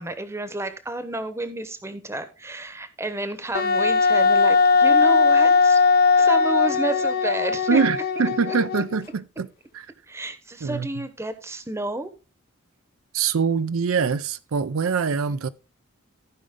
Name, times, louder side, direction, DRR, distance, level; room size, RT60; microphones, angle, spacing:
voice 1, 0.0-5.8 6.1-7.8 8.5-8.6 10.1-12.1, right 2 dB, 15° right, 0.9 m, -31 dB
Wind instrument woodwind instrument, 3.5-9.0, left 4 dB, 45° left, 0.5 m, -19 dB
voice 2, 7.7-9.5 9.7-9.9 10.6-10.9 13.1-15.5, right 5 dB, 75° right, 0.5 m, -24 dB
15.0 x 5.1 x 3.6 m
head